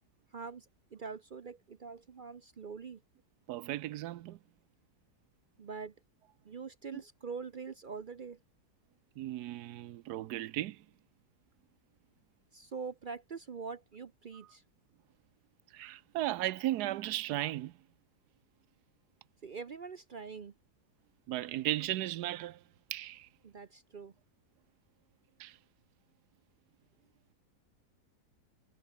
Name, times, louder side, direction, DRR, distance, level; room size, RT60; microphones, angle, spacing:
voice 1, 0.3-0.7 0.9-3.0 5.6-5.9 6.4-8.4 12.5-14.6 19.4-20.5 23.4-24.1, right 5 dB, 55° right, 0.5 m, -44 dB
voice 2, 3.5-4.4 6.9-7.0 9.2-10.8 15.7-17.7 21.3-22.6 22.9-23.3 25.4-25.5, right 14 dB, 75° right, 1.1 m, -35 dB
omnidirectional pair, 1.8 m